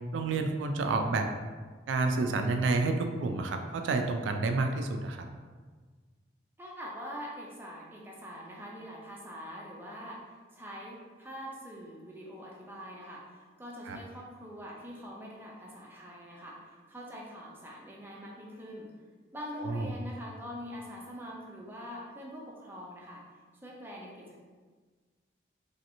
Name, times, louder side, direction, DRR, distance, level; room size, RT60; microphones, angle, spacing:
voice 1, 0.1-1.3 1.9-5.3 13.9-14.0 19.6-19.9, right 3 dB, 85° right, 5 dB, 0.3 m, -29 dB
voice 2, 6.6-18.9 19.3-23.2 23.6-24.4, equal, 10° right, -3 dB, 0.4 m, -44 dB
3.1 x 2.8 x 2.6 m, 1.5 s
head